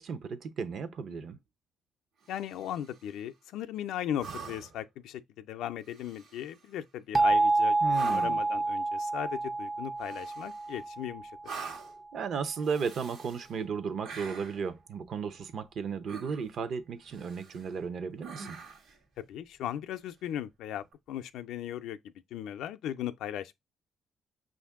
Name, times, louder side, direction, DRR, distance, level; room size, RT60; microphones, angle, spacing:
voice 1, 0.0-1.4 7.8-8.4 12.1-18.6, right 6 dB, 60° right, 0.7 m, -35 dB
voice 2, 2.3-11.6 19.2-23.6, left 11 dB, 85° left, 0.4 m, -37 dB
sound 1, 2.3-3.0 4.2-4.9 5.9-6.6 7.9-8.5 10.0-10.8 11.4-12.0 12.6-13.5 14.0-14.7 16.1-16.6 17.1-17.7 18.2-19.0 20.8-20.9, right 5 dB, 80° right, 1.2 m, -45 dB
sound 2, 7.1-11.9, right 2 dB, 20° right, 0.3 m, -28 dB
5.7 x 2.6 x 3.5 m
cardioid pair, 90°, 0 cm